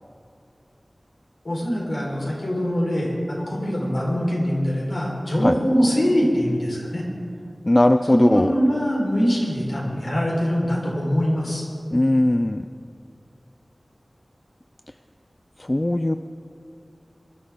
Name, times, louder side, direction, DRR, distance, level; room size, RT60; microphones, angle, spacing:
voice 1, 1.4-7.0 8.1-11.6, equal, 65° left, -4 dB, 4.7 m, -23 dB
voice 2, 7.7-8.5 11.9-12.6 15.7-16.2, left 1 dB, 30° left, 8 dB, 0.4 m, -18 dB
23.5 x 12.5 x 3.8 m, 2.4 s
wide cardioid pair, 60°, 0 cm